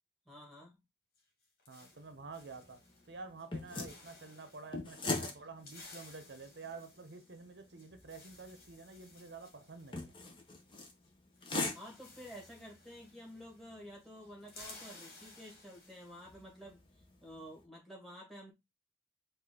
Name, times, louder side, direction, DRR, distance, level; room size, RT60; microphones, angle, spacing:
voice 1, 0.3-0.8 11.7-16.8 17.2-18.5, equal, ahead, 1.7 m, -51 dB
sound 1, 1.1-3.1 3.4-3.6 3.8-4.7 5.3-10.8 11.0-11.1 11.3-13.7 14.0-16.4, left 3 dB, 55° left, 1.9 m, -57 dB
voice 2, 1.7-10.2, right 3 dB, 75° right, 0.7 m, -49 dB
sound 2, 1.8-17.6, left 3 dB, 30° left, 0.8 m, -45 dB
5.0 x 2.6 x 3.7 m
head